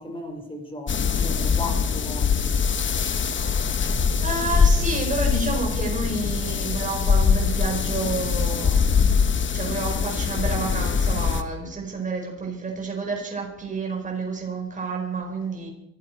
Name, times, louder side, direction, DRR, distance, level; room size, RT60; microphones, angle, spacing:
voice 1, 0.0-2.6, left 1 dB, 15° left, 5.1 m, -36 dB
sound 1, 0.9-11.4, left 6 dB, 35° left, 1.3 m, -23 dB
voice 2, 4.2-15.7, right 3 dB, 20° right, 4.8 m, -30 dB
23.0 x 13.5 x 4.6 m
hypercardioid pair, 70°, 35 cm